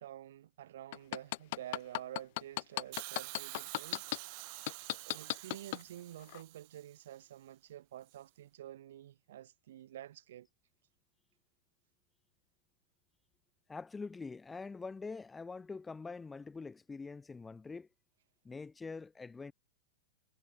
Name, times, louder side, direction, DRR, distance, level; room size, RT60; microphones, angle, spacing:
voice 1, 0.0-4.1 5.0-10.5, right 12 dB, 80° right, 6.7 m, -49 dB
sound 1, 0.9-4.2 4.7-5.8 6.3-6.4, left 21 dB, 60° left, 0.8 m, -35 dB
Hiss, 2.9-7.1 8.1-8.2, right 37 dB, 55° right, 1.7 m, -48 dB
voice 2, 13.7-17.9 18.4-19.5, left 4 dB, 10° left, 1.1 m, -44 dB
hypercardioid pair, 125°, 0 cm